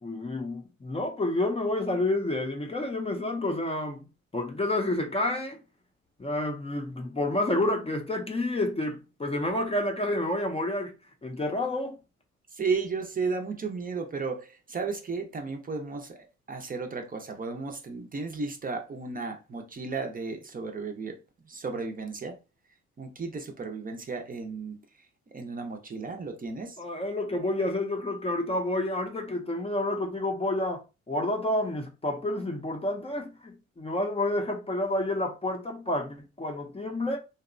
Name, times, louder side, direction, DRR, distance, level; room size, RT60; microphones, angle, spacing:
voice 1, 0.0-4.0 4.3-5.6 6.2-10.9 11.2-12.0 26.8-37.2, left 1 dB, 20° left, 0.5 m, -29 dB
voice 2, 12.5-21.2 21.5-22.4 23.0-24.8 25.3-26.8, right 4 dB, 30° right, 0.5 m, -34 dB
2.8 x 2.1 x 2.5 m
cardioid pair, 90°, 30 cm